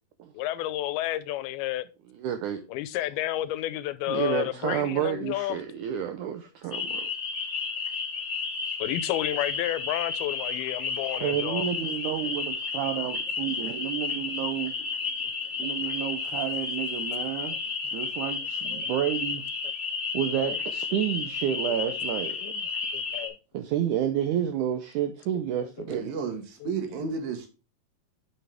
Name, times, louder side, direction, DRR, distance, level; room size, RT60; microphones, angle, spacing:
voice 1, 0.3-1.9 2.7-5.6 8.8-11.6 16.0-16.1 18.7-18.8 20.4-20.6 21.8-22.0 22.4-22.6 22.9-23.3 26.2-26.7, left 14 dB, 90° left, 2.6 m, -31 dB
voice 2, 2.1-2.6 4.1-7.1 11.2-14.7 15.6-17.6 17.9-19.4 20.1-22.5 23.5-26.0, right 10 dB, 90° right, 1.7 m, -30 dB
sound 1, 6.7-23.3, left 4 dB, 60° left, 0.7 m, -32 dB
voice 3, 25.9-27.5, right 5 dB, 70° right, 3.1 m, -32 dB
7.8 x 6.3 x 3.4 m
omnidirectional pair, 4.3 m